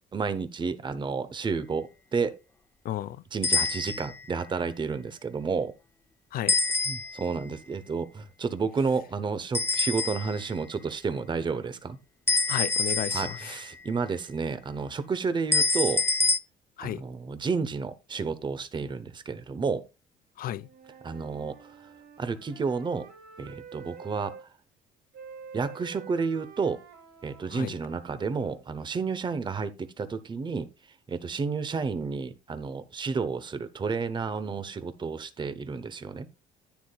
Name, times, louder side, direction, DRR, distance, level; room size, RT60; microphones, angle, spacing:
voice 1, 0.1-2.4 3.3-5.7 6.9-12.0 13.1-16.0 16.8-19.8 21.0-21.7 22.2-23.1 23.4-24.3 25.5-26.8 27.2-30.7 31.1-36.3, right 5 dB, 25° right, 0.9 m, -31 dB
voice 2, 2.8-3.2 6.3-6.5 12.5-13.5 16.8-17.0 20.4-20.7 27.5-27.7, left 12 dB, 60° left, 0.5 m, -33 dB
sound 1, 3.4-4.2 6.5-7.4 9.5-10.5 12.3-13.7 15.5-16.4, left 3 dB, 15° left, 0.6 m, -26 dB
Wind instrument woodwind instrument, 20.5-24.5 25.1-28.7, right 6 dB, 75° right, 2.4 m, -48 dB
10.5 x 9.4 x 2.3 m
cardioid pair, 110°, 17 cm